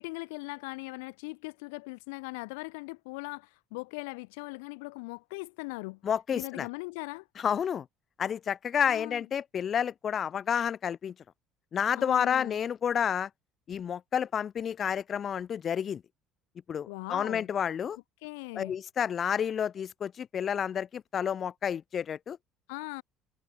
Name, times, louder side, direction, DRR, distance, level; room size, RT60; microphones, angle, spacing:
voice 1, 0.0-6.0 6.3-7.3 8.9-9.2 12.0-12.6 16.9-17.5 18.2-18.8 22.7-23.0, left 28 dB, 80° left, 1.4 m, -40 dB
voice 2, 6.0-6.7 7.4-7.9 8.2-11.1 11.7-13.3 13.7-16.0 16.7-18.0 18.6-22.4, left 8 dB, 45° left, 2.2 m, -30 dB
hypercardioid pair, 70°, 0 cm